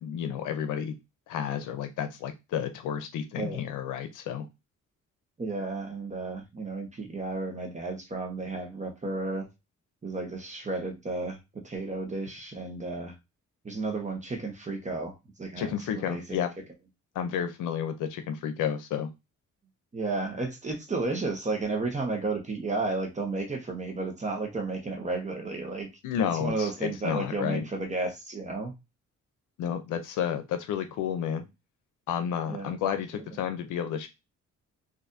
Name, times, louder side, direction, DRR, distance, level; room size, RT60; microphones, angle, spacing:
voice 1, 0.0-1.0 1.3-4.5 15.6-16.5 17.1-19.1 26.0-27.6 29.6-31.4 32.1-34.1, left 8 dB, 85° left, 8 dB, 0.6 m, -31 dB
voice 2, 5.4-9.5 10.0-11.4 11.6-13.1 13.6-16.2 19.9-25.9 26.4-28.7 32.5-32.7, right 3 dB, 25° right, 2 dB, 1.0 m, -33 dB
4.0 x 2.6 x 2.6 m, 0.23 s
cardioid pair, 90°, 30 cm